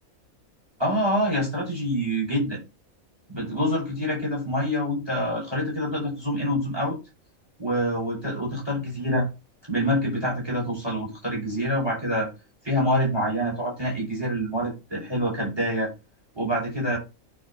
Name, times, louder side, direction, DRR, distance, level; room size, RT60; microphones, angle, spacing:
voice 1, 0.8-2.6 3.3-7.0 7.6-9.3 9.7-12.3 12.6-15.9 16.3-17.0, equal, 15° right, -3 dB, 5.4 m, -26 dB
9.3 x 4.5 x 4.3 m, 0.27 s
omnidirectional pair, 1.5 m